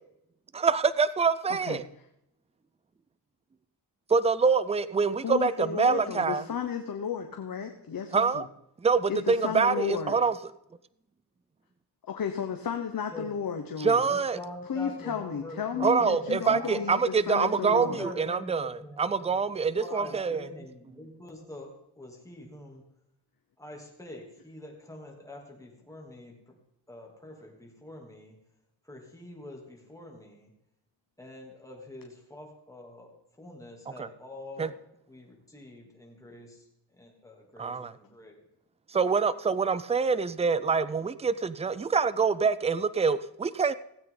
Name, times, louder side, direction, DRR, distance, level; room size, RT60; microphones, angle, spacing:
voice 1, 0.5-1.8 4.1-6.4 8.1-8.4 8.8-10.3 13.8-14.4 15.8-20.4 34.0-34.1 34.6-34.7 37.6-37.9 38.9-43.7, right 5 dB, 15° right, 15 dB, 0.4 m, -25 dB
voice 2, 5.2-8.4 9.1-10.1 12.0-14.1 14.7-18.0, left 7 dB, 55° left, 5 dB, 1.0 m, -33 dB
voice 3, 14.0-16.9 17.7-19.5 19.8-22.8 23.6-26.4 26.9-28.4 28.8-30.5 31.2-34.7 35.1-36.6 36.9-38.4, left 1 dB, 10° left, -1 dB, 2.9 m, -45 dB
16.5 x 8.7 x 3.9 m, 0.81 s
wide cardioid pair, 100°, 41 cm